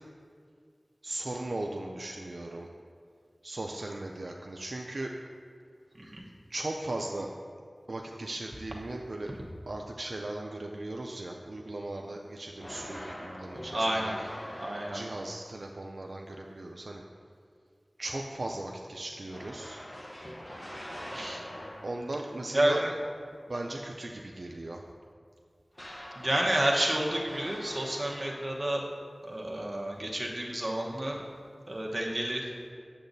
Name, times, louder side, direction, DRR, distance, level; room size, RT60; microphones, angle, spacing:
voice 1, 1.0-2.7 3.4-5.1 6.5-7.3 7.9-9.3 9.7-14.2 14.9-17.0 18.0-19.8 21.8-22.8 23.5-24.8, right 2 dB, 75° right, 1 dB, 0.4 m, -37 dB
sound 1, 12.6-15.6 19.3-22.2 25.7-28.8, equal, 25° left, 0.9 m, -43 dB
voice 2, 13.7-14.3 14.6-15.0 21.1-21.5 22.5-22.9 26.2-28.8 29.2-31.2 31.7-32.5, right 1 dB, 40° right, -1 dB, 1.0 m, -30 dB
8.5 x 7.1 x 2.6 m, 2.2 s
wide cardioid pair, 60°, 0 cm